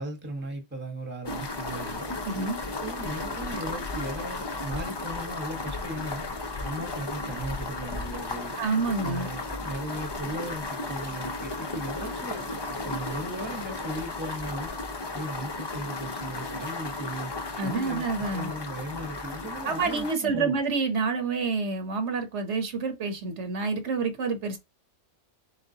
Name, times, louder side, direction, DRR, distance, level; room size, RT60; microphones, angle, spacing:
voice 1, 0.0-2.1 2.8-6.3 6.6-8.5 9.0-12.4 12.7-14.7 15.1-17.3 17.6-18.0 18.3-20.6, right 1 dB, 10° right, 1.1 m, -37 dB
sound 1, 1.2-20.1, left 3 dB, 30° left, 0.5 m, -34 dB
voice 2, 2.3-2.6 8.6-9.3 17.6-18.5 19.6-24.6, right 4 dB, 70° right, 1.2 m, -28 dB
4.1 x 3.7 x 2.7 m
omnidirectional pair, 1.2 m